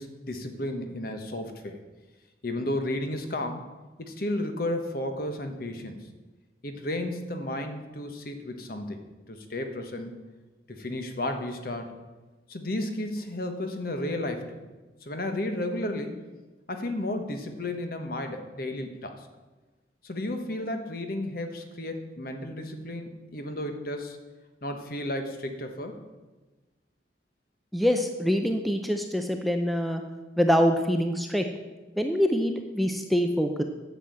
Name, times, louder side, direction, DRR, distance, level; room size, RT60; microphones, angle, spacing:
voice 1, 0.0-1.8 2.4-3.7 4.0-6.1 6.6-9.0 9.3-10.1 10.7-11.9 12.5-14.6 15.0-16.3 16.7-19.3 20.0-24.2 24.6-26.0, left 1 dB, 50° left, 6 dB, 1.2 m, -33 dB
voice 2, 27.7-30.0 30.4-31.4 32.0-33.6, equal, ahead, 5 dB, 0.6 m, -25 dB
9.7 x 7.3 x 7.7 m, 1.2 s
head